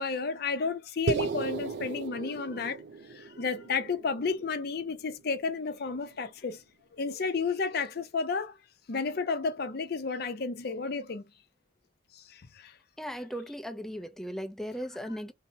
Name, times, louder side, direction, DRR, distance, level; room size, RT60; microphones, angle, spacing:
voice 1, 0.0-2.8 3.1-6.6 7.0-8.5 8.9-11.2 12.1-12.7, left 4 dB, 55° left, 0.5 m, -32 dB
sound 1, 1.1-5.5, right 4 dB, 65° right, 0.4 m, -36 dB
voice 2, 13.0-15.3, equal, ahead, 0.4 m, -37 dB
2.8 x 2.1 x 2.6 m
head